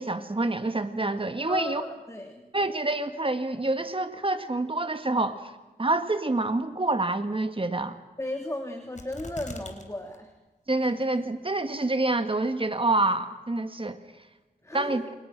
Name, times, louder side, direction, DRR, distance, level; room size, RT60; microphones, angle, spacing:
voice 1, 0.0-1.8 2.5-5.5 5.8-8.0 10.7-14.0 14.7-15.0, right 2 dB, 30° right, 9 dB, 1.8 m, -27 dB
voice 2, 1.5-2.4 8.2-10.3 14.6-15.0, left 1 dB, 15° left, 4 dB, 3.1 m, -35 dB
sound 1, 9.0-9.8 10.1-10.2 10.8-11.3 11.8-11.9, left 2 dB, 45° left, 4.1 m, -41 dB
30.0 x 28.0 x 6.1 m, 1.1 s
wide cardioid pair, 95°, 18 cm